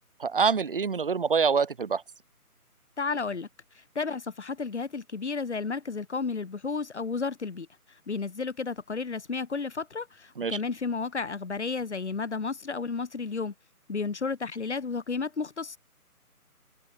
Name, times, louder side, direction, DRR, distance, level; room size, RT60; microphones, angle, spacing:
voice 1, 0.2-2.0 10.4-10.6, right 5 dB, 35° right, 1.6 m, -25 dB
voice 2, 3.0-3.5 4.0-7.7 8.1-13.5 13.9-15.8, left 4 dB, 50° left, 7.0 m, -32 dB
figure-of-eight pair, 155°, 45 cm